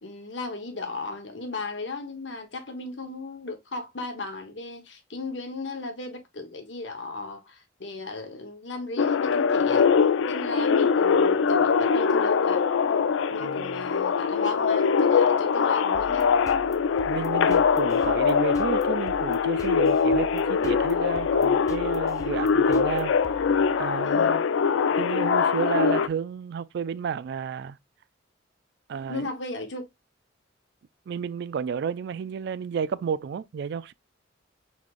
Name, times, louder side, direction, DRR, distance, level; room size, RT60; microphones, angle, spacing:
voice 1, 0.0-9.9 10.3-12.7 13.3-16.3 24.0-24.4 29.1-29.9, left 3 dB, 70° left, 1.2 m, -35 dB
sound 1, 9.0-26.1, left 6 dB, 90° left, 0.4 m, -23 dB
voice 2, 13.3-13.9 17.1-23.1 23.8-24.4 24.9-27.8 28.9-29.3 31.1-33.9, right 7 dB, 60° right, 0.3 m, -32 dB
sound 2, 15.9-24.1, left 2 dB, 15° left, 0.3 m, -45 dB
4.6 x 4.2 x 2.4 m
head